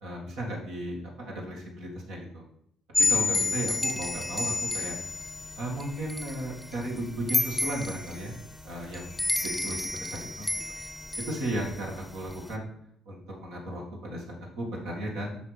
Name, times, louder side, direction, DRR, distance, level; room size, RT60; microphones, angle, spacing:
voice 1, 0.0-2.4 3.0-5.0 5.6-8.3 8.6-10.5 11.3-12.7 13.1-14.2 14.6-15.4, right 1 dB, 75° right, -3 dB, 1.9 m, -35 dB
sound 1, 2.9-12.5, left 2 dB, 5° left, 0.8 m, -31 dB
8.2 x 5.8 x 3.4 m, 0.70 s
hypercardioid pair, 50°, 0 cm